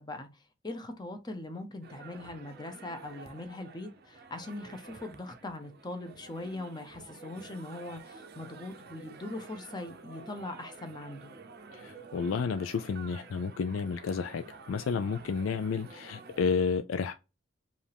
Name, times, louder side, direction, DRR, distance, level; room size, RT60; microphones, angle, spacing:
voice 1, 0.0-11.3, left 2 dB, 20° left, 0.7 m, -41 dB
sound 1, 1.8-16.5, right 4 dB, 50° right, 0.6 m, -50 dB
voice 2, 11.7-17.1, left 5 dB, 90° left, 0.4 m, -31 dB
5.1 x 2.5 x 3.4 m
head